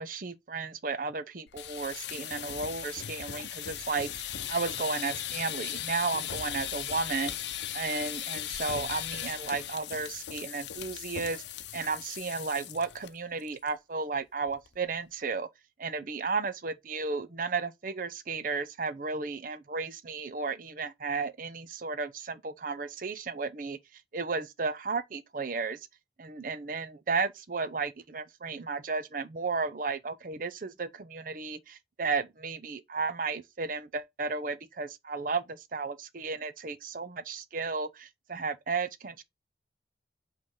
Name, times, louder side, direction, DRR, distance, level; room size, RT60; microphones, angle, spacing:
voice 1, 0.0-7.3 7.7-11.4 11.7-15.5 15.8-25.8 26.2-39.2, right 4 dB, 50° right, 0.6 m, -34 dB
sound 1, 1.5-13.1 13.4-13.7 14.0-14.1 14.5-14.9, left 10 dB, 75° left, 0.7 m, -38 dB
5.4 x 3.3 x 5.5 m
head